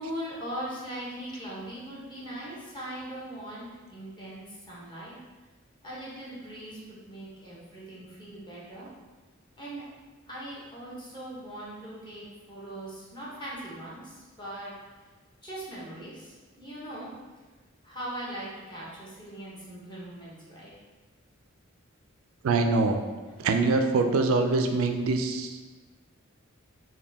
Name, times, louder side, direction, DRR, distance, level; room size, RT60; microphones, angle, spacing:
voice 1, 0.0-5.2 5.8-8.9 9.6-9.9 10.3-15.1 15.4-17.1 17.8-20.7, right 1 dB, 20° left, -7 dB, 0.9 m, -40 dB
voice 2, 22.4-23.1 23.4-25.6, right 3 dB, 85° right, 5 dB, 0.4 m, -24 dB
3.9 x 2.2 x 3.3 m, 1.3 s
head